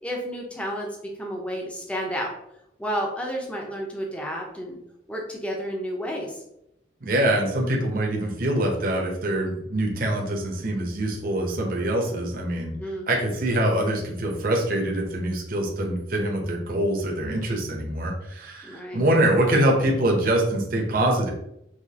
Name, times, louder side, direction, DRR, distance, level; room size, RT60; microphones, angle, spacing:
voice 1, 0.0-2.3 2.8-4.8 5.1-6.4 12.8-13.1 18.6-19.0, equal, 5° left, -1 dB, 0.7 m, -31 dB
voice 2, 7.0-12.7 13.1-21.3, right 1 dB, 50° right, 0 dB, 0.8 m, -24 dB
5.0 x 3.0 x 2.8 m, 0.80 s
head